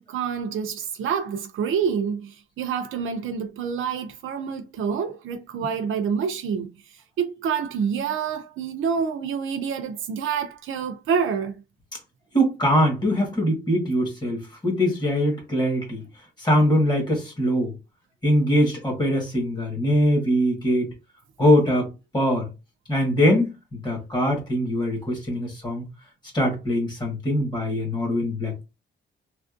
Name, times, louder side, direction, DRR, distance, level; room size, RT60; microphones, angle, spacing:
voice 1, 0.0-6.7 7.2-11.5, right 6 dB, 90° right, 0.5 m, -27 dB
voice 2, 12.3-16.0 16.4-17.7 18.2-20.9 21.4-21.9 22.1-22.5 22.9-25.8 26.3-28.6, equal, 20° left, 1.4 m, -22 dB
3.2 x 2.5 x 2.5 m
wide cardioid pair, 140°, 20 cm